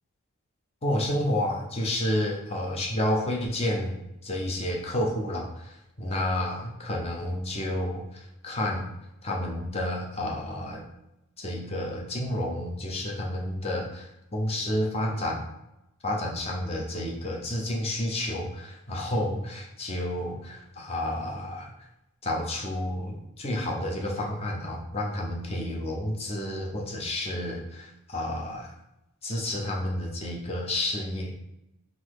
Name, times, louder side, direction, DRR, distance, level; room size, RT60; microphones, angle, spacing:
voice 1, 0.8-8.9 9.2-10.8 11.4-15.5 16.0-21.7 22.2-28.7 29.2-31.3, left 1 dB, 30° left, -1 dB, 0.7 m, -30 dB
4.0 x 2.6 x 4.6 m, 0.87 s
head